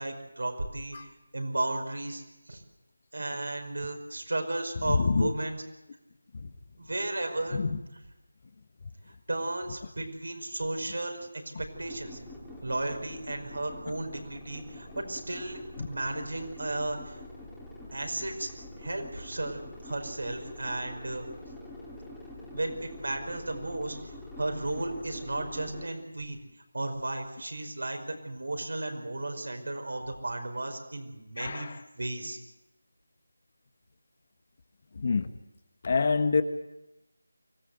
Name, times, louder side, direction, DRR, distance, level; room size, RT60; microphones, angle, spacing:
voice 1, 0.0-2.6 3.1-5.6 6.8-7.6 9.3-11.2 11.6-12.2 12.6-15.6 15.9-17.2 17.9-18.5 18.8-21.3 22.5-24.0 24.4-26.4 26.7-32.4, right 2 dB, 65° right, 5 dB, 5.0 m, -34 dB
voice 2, 4.8-5.3 6.3-6.5 7.5-7.8 15.8-15.9 31.4-31.8 34.9-35.3 35.8-36.4, left 4 dB, 40° left, 11 dB, 1.2 m, -26 dB
sound 1, 11.7-25.9, left 1 dB, ahead, 3.2 m, -45 dB
25.0 x 16.5 x 7.9 m, 0.95 s
figure-of-eight pair, 165°, 0 cm